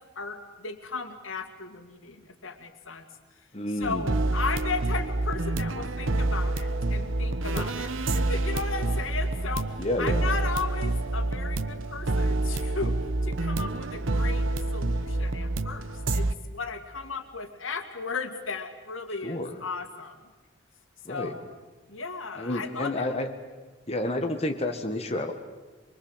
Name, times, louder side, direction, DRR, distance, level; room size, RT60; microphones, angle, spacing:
voice 1, 0.0-3.0 3.8-14.5 14.7-20.2 21.1-21.5 21.9-23.2, left 4 dB, 90° left, 6 dB, 2.3 m, -36 dB
voice 2, 3.5-4.1 7.5-7.7 9.8-10.3 19.2-19.6 21.1-21.4 22.4-23.3 23.9-25.3, left 1 dB, 30° left, 4 dB, 1.7 m, -30 dB
sound 1, 3.8-16.3, right 2 dB, 90° right, 1.0 m, -28 dB
24.0 x 22.5 x 8.1 m, 1.3 s
head